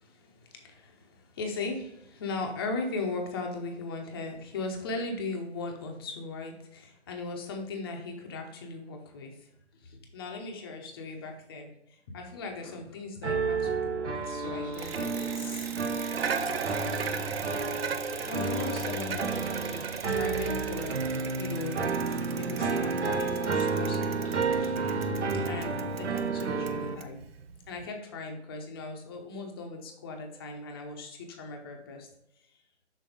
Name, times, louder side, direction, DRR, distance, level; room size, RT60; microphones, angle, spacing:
voice 1, 0.0-9.5 9.8-15.7 16.1-17.4 18.2-21.0 21.4-24.7 25.4-27.2 27.7-32.1, left 3 dB, 20° left, 2 dB, 0.7 m, -38 dB
sound 1, 13.2-27.0, right 4 dB, 75° right, 1.2 m, -31 dB
sound 2, 14.2-25.7, equal, 5° left, 1.1 m, -51 dB
Bicycle, 14.7-27.9, right 6 dB, 55° right, 0.7 m, -38 dB
6.2 x 4.0 x 5.0 m, 0.82 s
hypercardioid pair, 155°, 35 cm